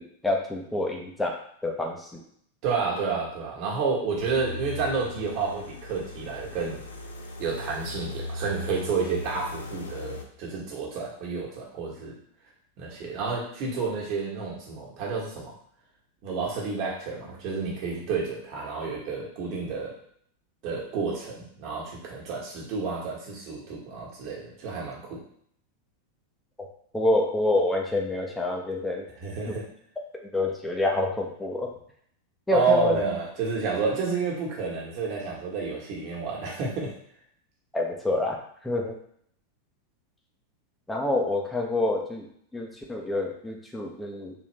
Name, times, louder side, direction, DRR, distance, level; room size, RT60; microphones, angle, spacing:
voice 1, 0.0-1.4 1.6-2.2 26.6-26.7 26.9-29.1 29.5-29.6 30.3-31.7 32.5-33.0 37.7-38.4 38.6-39.0 40.9-42.3 42.5-44.5, left 2 dB, 5° left, 0 dB, 0.8 m, -27 dB
voice 2, 2.6-6.8 7.4-12.1 12.8-15.5 16.2-19.9 20.6-25.2 29.2-29.6 32.5-36.9, right 4 dB, 45° right, -3 dB, 1.4 m, -30 dB
sound 1, 4.2-10.2, left 3 dB, 70° left, 0.5 m, -38 dB
3.9 x 3.1 x 3.2 m, 0.65 s
figure-of-eight pair, 90°, 0 cm